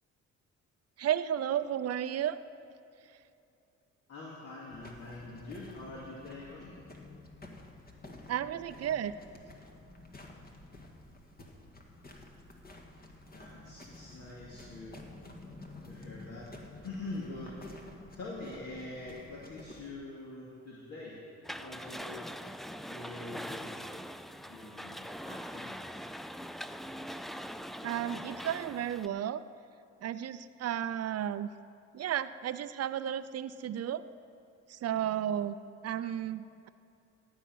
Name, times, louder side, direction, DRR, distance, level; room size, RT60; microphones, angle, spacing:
voice 1, 1.0-2.4 8.3-9.1 27.8-29.4 30.0-31.5 31.9-34.0 34.7-35.6 35.8-36.7, right 10 dB, 55° right, 13 dB, 0.6 m, -33 dB
voice 2, 4.1-6.8 13.3-15.0 15.9-16.5 16.8-17.6 18.1-21.2 21.6-22.2 22.9-23.8 24.4-25.8, left 2 dB, 55° left, -6 dB, 2.6 m, -44 dB
sound 1, 4.7-19.9, left 2 dB, 30° left, 1.8 m, -51 dB
sound 2, 21.4-29.1, equal, ahead, 0.3 m, -42 dB
15.0 x 5.7 x 9.3 m, 2.7 s
cardioid pair, 90°, 30 cm